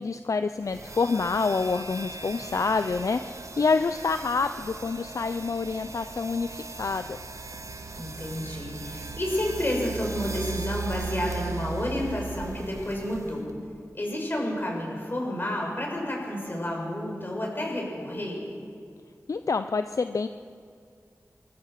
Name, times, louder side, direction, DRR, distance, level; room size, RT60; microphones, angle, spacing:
voice 1, 0.0-7.2 19.3-20.3, left 4 dB, 70° left, 9 dB, 0.6 m, -27 dB
sound 1, 0.7-13.5, right 4 dB, 65° right, 1.4 m, -38 dB
voice 2, 8.0-13.5 13.9-18.4, left 1 dB, 35° left, -1 dB, 6.7 m, -30 dB
25.5 x 14.5 x 7.7 m, 2.3 s
wide cardioid pair, 60°, 6 cm